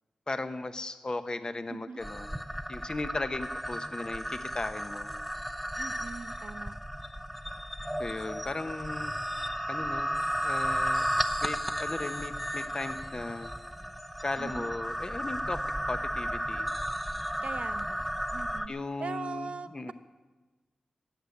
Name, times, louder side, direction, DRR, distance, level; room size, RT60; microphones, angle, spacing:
voice 1, 0.3-2.3 2.7-5.1 8.0-9.1 9.7-11.1 11.4-13.5 14.2-15.6 15.9-16.7 18.7-19.9, left 2 dB, 35° left, 9 dB, 0.9 m, -37 dB
voice 2, 1.7-2.0 5.8-6.8 14.4-14.7 17.4-18.7 19.0-19.9, right 5 dB, 65° right, 11 dB, 0.8 m, -41 dB
sound 1, 2.0-18.7, equal, ahead, 0.7 m, -34 dB
14.5 x 9.9 x 8.3 m, 1.2 s
wide cardioid pair, 90°, 2 cm